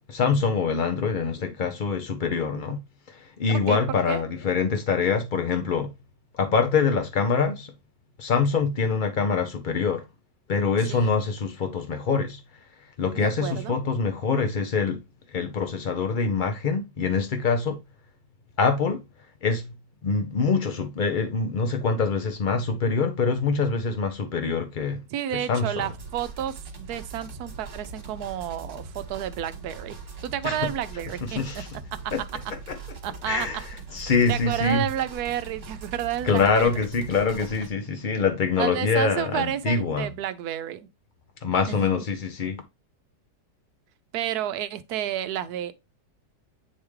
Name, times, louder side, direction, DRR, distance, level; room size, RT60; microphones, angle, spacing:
voice 1, 0.1-5.9 6.4-7.7 8.2-10.0 10.5-12.4 13.0-15.0 15.3-17.8 18.6-19.0 19.4-19.7 20.0-25.0 25.3-25.9 30.4-30.7 31.2-31.7 32.1-32.2 32.5-32.8 33.3-34.8 36.2-40.1 41.4-42.6, left 5 dB, 75° left, 0.4 m, -25 dB
voice 2, 3.5-3.8 4.1-4.2 10.9-11.1 13.2-13.8 25.1-29.9 30.2-31.6 32.0-32.1 33.0-33.5 34.3-36.7 38.6-40.9 41.7-41.9 44.1-45.7, right 11 dB, 70° right, 1.1 m, -31 dB
sound 1, 25.8-37.7, right 3 dB, 45° right, 1.7 m, -41 dB
8.7 x 3.5 x 3.1 m
omnidirectional pair, 1.8 m